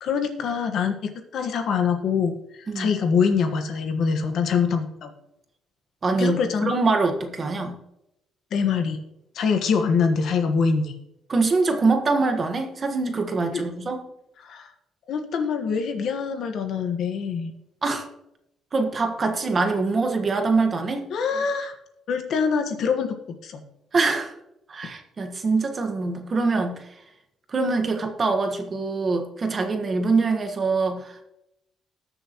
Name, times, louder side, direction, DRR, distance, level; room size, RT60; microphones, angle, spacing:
voice 1, 0.0-5.1 6.2-6.7 8.5-9.0 9.3-10.9 13.5-13.6 14.4-14.7 15.1-17.5 21.1-21.7 22.1-23.2 23.4-23.6, left 6 dB, 60° left, 5 dB, 1.4 m, -24 dB
voice 2, 6.0-7.8 11.3-14.0 17.8-18.1 18.7-21.1 23.9-24.3 24.7-26.8 27.5-31.2, right 3 dB, 30° right, 5 dB, 1.4 m, -24 dB
20.0 x 7.0 x 3.0 m, 0.83 s
cardioid pair, 160°, 0 cm